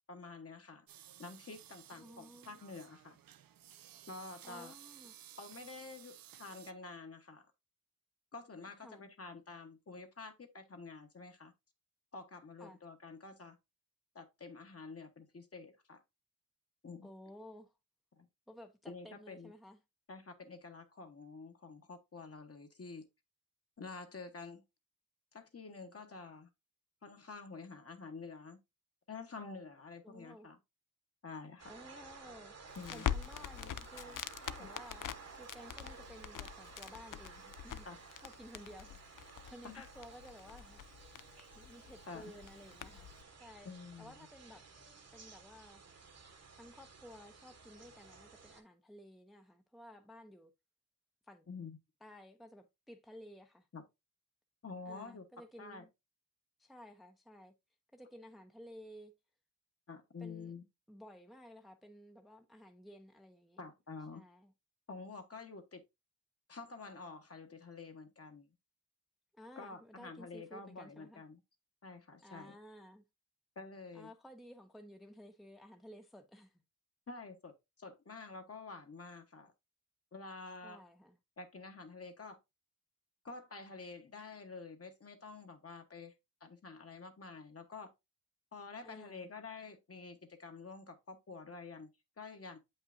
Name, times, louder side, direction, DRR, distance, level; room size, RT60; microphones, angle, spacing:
voice 1, 0.1-0.9 1.2-3.2 4.1-4.8 5.4-7.5 8.3-11.5 12.1-13.6 14.1-16.0 16.8-17.1 18.2-18.3 18.9-19.5 20.1-23.0 23.8-24.6 25.3-26.5 27.0-28.6 29.1-30.6 31.2-31.7 32.8-33.1 34.6-34.7 37.8-38.0 39.6-39.9 42.1-42.3 43.6-44.3 51.5-51.8 53.7-53.8 54.6-55.2 55.6-55.8 59.9-60.6 63.6-64.2 64.9-65.8 66.5-68.5 69.6-71.4 71.8-72.6 73.5-74.1 77.1-79.5 80.1-80.8 81.4-82.4 83.2-86.1 86.4-87.9 88.5-91.9 92.2-92.6, left 4 dB, 45° left, 1.3 m, -49 dB
sound 1, 0.9-6.7, right 11 dB, 85° right, 0.5 m, -56 dB
voice 2, 2.0-2.6 4.4-5.1 8.8-9.1 12.6-12.8 17.0-17.7 18.5-19.8 30.0-30.5 31.7-37.9 38.2-40.9 41.5-43.1 43.4-43.7 44.0-44.6 45.1-45.8 46.6-50.5 51.3-51.5 52.0-53.7 54.8-55.9 56.6-57.5 57.9-59.1 60.2-60.5 60.9-63.6 64.1-64.5 69.3-71.2 72.2-73.0 73.9-76.6 80.6-81.2 88.8-89.3, equal, ahead, 0.6 m, -55 dB
sound 2, 31.6-48.6, right 5 dB, 50° right, 1.1 m, -55 dB
Crackle, 32.7-43.2, left 10 dB, 70° left, 0.5 m, -44 dB
8.0 x 5.5 x 2.6 m
wide cardioid pair, 110°, 34 cm